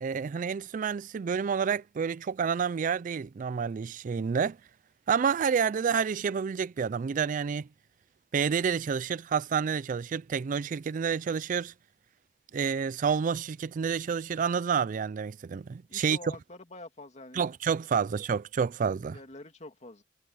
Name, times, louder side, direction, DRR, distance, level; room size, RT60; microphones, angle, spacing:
voice 1, 0.0-4.6 5.1-7.7 8.3-11.7 12.5-16.2 17.3-19.2, right 6 dB, 45° right, 0.3 m, -29 dB
voice 2, 15.9-17.5 19.0-20.0, left 2 dB, 40° left, 2.3 m, -46 dB
head